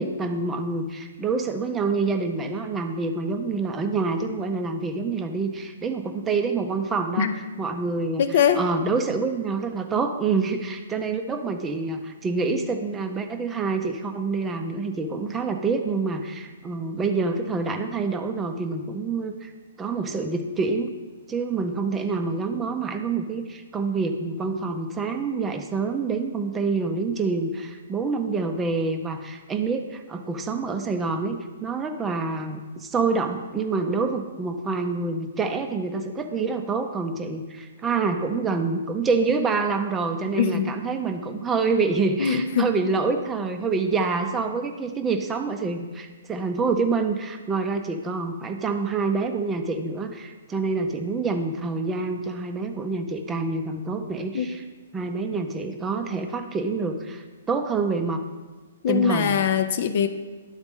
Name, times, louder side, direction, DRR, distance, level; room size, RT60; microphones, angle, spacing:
voice 1, 0.0-7.3 7.6-8.2 8.6-19.5 19.8-20.9 21.3-54.6 54.9-58.2 58.9-59.4, right 4 dB, 15° right, 6 dB, 0.5 m, -27 dB
voice 2, 8.2-8.6 40.4-40.7 42.2-42.7 54.3-54.6 58.8-60.1, left 7 dB, 50° left, 10 dB, 0.4 m, -22 dB
10.5 x 4.0 x 3.6 m, 1.3 s
figure-of-eight pair, 125°, 0 cm